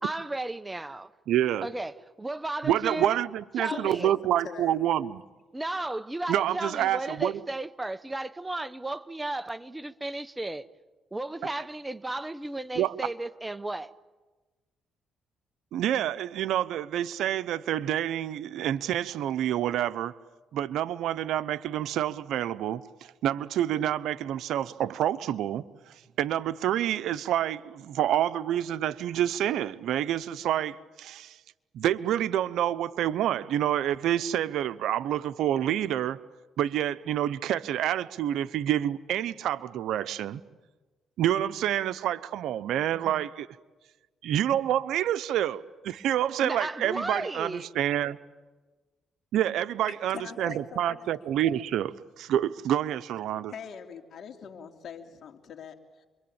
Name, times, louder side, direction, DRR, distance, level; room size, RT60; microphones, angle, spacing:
voice 1, 0.0-1.1 1.6-3.2 3.6-4.1 5.5-10.7 11.1-13.9 42.9-43.3 46.4-47.7, right 2 dB, 15° right, 0.9 m, -34 dB
voice 2, 1.3-1.7 2.6-5.2 6.3-7.3 12.7-12.9 15.7-20.1 20.5-22.8 23.2-25.7 26.2-31.3 31.7-36.2 36.6-40.4 41.2-43.5 44.2-48.2 49.3-53.5, right 11 dB, 80° right, 0.9 m, -28 dB
voice 3, 3.6-4.1 4.4-4.8 49.9-51.2 53.5-56.1, left 7 dB, 65° left, 3.0 m, -42 dB
28.5 x 23.5 x 8.9 m
cardioid pair, 90°, 0 cm